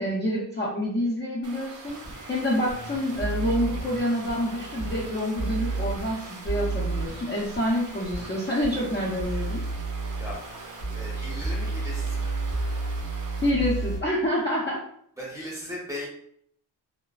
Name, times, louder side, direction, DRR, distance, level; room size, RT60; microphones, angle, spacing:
voice 1, 0.0-2.0 2.3-9.6 13.4-14.8, left 1 dB, 25° left, -5 dB, 0.4 m, -27 dB
sound 1, 1.4-13.5, right 3 dB, 45° right, 0.4 m, -44 dB
sound 2, 1.9-14.0, right 3 dB, 90° left, 1.4 m, -32 dB
voice 2, 10.9-12.4 15.2-16.1, left 1 dB, 5° right, -4 dB, 0.7 m, -37 dB
3.1 x 2.0 x 2.3 m, 0.66 s
wide cardioid pair, 165°, 46 cm